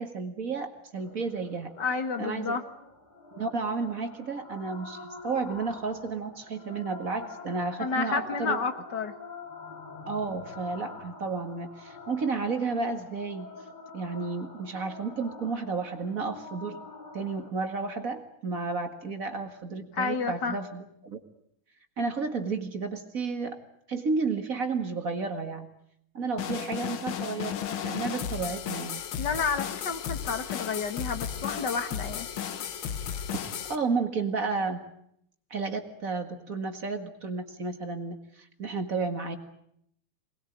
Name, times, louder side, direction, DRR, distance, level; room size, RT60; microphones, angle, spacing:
voice 1, 0.0-1.7 2.2-2.6 3.3-5.0 5.2-8.6 10.1-13.5 13.9-16.8 17.1-21.2 22.0-25.7 26.1-29.0 33.7-34.8 35.5-39.4, right 4 dB, 45° right, 7 dB, 2.2 m, -32 dB
sound 1, 1.0-17.5, left 2 dB, 20° left, 5.3 m, -45 dB
voice 2, 1.8-2.6 7.8-9.2 19.9-20.6 29.2-32.3, left 5 dB, 60° left, 9 dB, 2.0 m, -30 dB
sound 2, 26.4-33.8, left 9 dB, 80° left, 2.0 m, -34 dB
23.5 x 20.5 x 9.1 m, 0.72 s
omnidirectional pair, 2.2 m